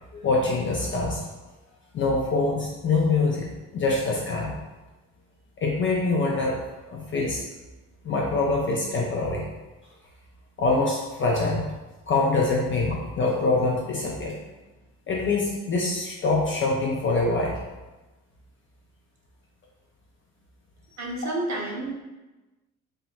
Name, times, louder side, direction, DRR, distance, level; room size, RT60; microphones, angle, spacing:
voice 1, 0.1-1.2 1.9-4.6 5.6-6.6 6.9-7.4 8.0-9.5 10.6-11.7 12.1-14.4 15.1-17.5, left 3 dB, 30° left, -2 dB, 0.4 m, -24 dB
voice 2, 21.0-21.9, right 2 dB, 40° right, -1 dB, 0.7 m, -30 dB
2.7 x 2.2 x 2.5 m, 1.1 s
hypercardioid pair, 55°, 45 cm